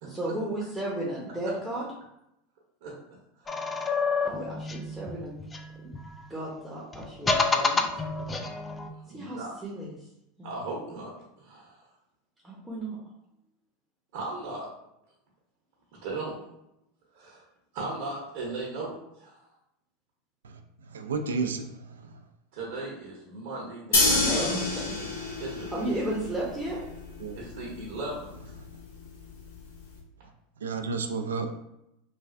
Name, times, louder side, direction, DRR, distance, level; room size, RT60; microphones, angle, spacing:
voice 1, 0.0-1.9 4.2-5.3 5.8-5.9 6.3-7.8 9.1-10.1 10.4-10.6 12.4-13.0 23.9-24.6 25.7-26.8, right 1 dB, 5° right, 0.8 m, -34 dB
voice 2, 3.4-3.9 9.0-9.5 10.4-11.8 14.1-14.7 16.0-16.4 17.1-17.4 17.7-19.4 22.5-24.5 25.4-25.7 27.3-28.5, right 2 dB, 65° right, 0.8 m, -37 dB
sound 1, 3.5-6.2 6.9-8.9, left 4 dB, 20° left, 0.3 m, -29 dB
voice 3, 20.9-22.2 27.2-27.4 30.6-31.5, right 4 dB, 85° right, 0.3 m, -32 dB
sound 2, 23.9-30.0, left 3 dB, 80° left, 0.6 m, -30 dB
3.1 x 2.3 x 2.5 m
hypercardioid pair, 90°, 0 cm